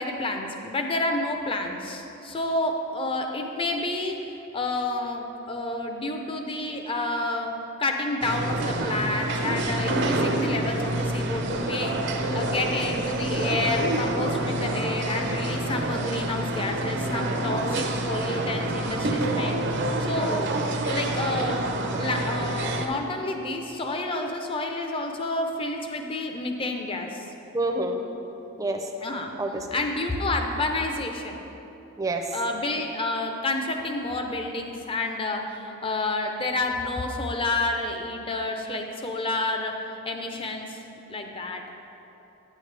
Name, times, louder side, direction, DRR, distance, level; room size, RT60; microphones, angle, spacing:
voice 1, 0.0-4.2 4.5-7.5 7.8-12.0 12.3-19.6 20.0-20.4 20.9-21.6 22.0-27.3 29.0-29.3 29.7-31.4 32.3-40.8 41.1-41.6, left 2 dB, 25° left, 3 dB, 0.6 m, -29 dB
sound 1, 8.2-22.9, right 1 dB, 55° right, 0.6 m, -27 dB
voice 2, 20.3-20.6 27.5-28.0 28.6-28.9 29.4-29.7 32.0-32.4, right 2 dB, 15° right, 3 dB, 0.6 m, -28 dB
9.0 x 8.3 x 3.4 m, 3.0 s
head